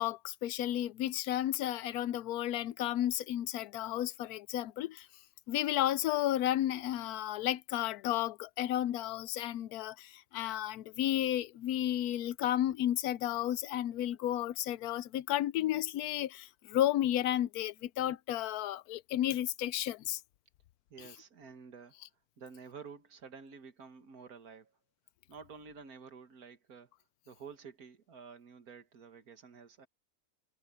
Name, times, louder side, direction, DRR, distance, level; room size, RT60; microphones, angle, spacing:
voice 1, 0.0-5.1 5.5-20.2, left 12 dB, 85° left, 1.1 m, -32 dB
voice 2, 20.9-22.0 22.4-24.8 25.3-26.9 27.3-29.9, right 5 dB, 80° right, 2.1 m, -51 dB
omnidirectional pair, 1.6 m